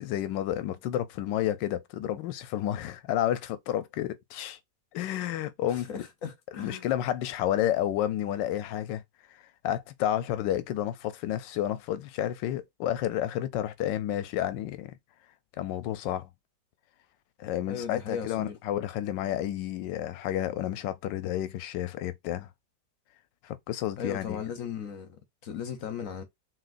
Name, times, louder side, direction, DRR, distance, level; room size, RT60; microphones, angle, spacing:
voice 1, 0.0-4.6 4.9-6.0 6.5-9.0 9.3-14.9 15.6-16.3 17.4-22.5 23.4-24.4, left 12 dB, 90° left, 1.3 m, -31 dB
voice 2, 5.7-6.9 17.7-18.5 24.0-26.2, left 7 dB, 60° left, 0.9 m, -37 dB
5.9 x 2.7 x 2.5 m
omnidirectional pair, 1.9 m